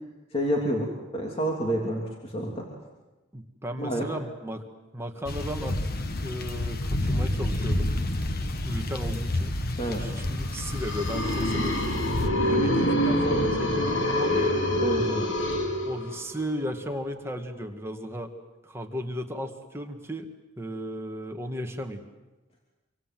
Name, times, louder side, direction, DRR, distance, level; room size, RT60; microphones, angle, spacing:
voice 1, 0.3-2.7 3.8-4.1 9.8-10.0 14.8-15.3, right 1 dB, 30° left, -1 dB, 3.0 m, -28 dB
voice 2, 3.3-4.6 4.9-5.7 6.2-7.9 8.6-9.6 9.9-11.7 12.3-14.6 15.8-18.3 18.6-20.3 20.6-22.0, equal, 15° right, 3 dB, 1.9 m, -35 dB
sound 1, 5.3-12.3, left 1 dB, 50° left, 1.4 m, -29 dB
sound 2, 10.5-16.4, left 1 dB, 65° left, 3.2 m, -26 dB
26.5 x 25.0 x 7.7 m, 1.1 s
head